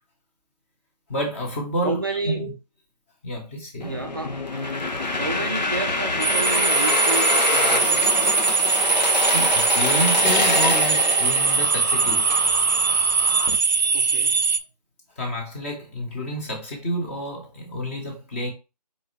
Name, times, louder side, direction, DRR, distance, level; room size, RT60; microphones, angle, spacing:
voice 1, 1.1-2.5 3.2-3.9 9.2-12.3 15.2-18.5, equal, 20° left, 1.0 m, -29 dB
voice 2, 1.8-2.4 3.8-4.3 5.2-8.1 13.9-14.5, right 3 dB, 35° right, 0.4 m, -30 dB
sound 1, 3.8-13.6, left 2 dB, 85° left, 1.1 m, -25 dB
sound 2, 6.2-14.6, right 5 dB, 85° right, 0.6 m, -21 dB
4.2 x 3.7 x 3.2 m
figure-of-eight pair, 160°, 21 cm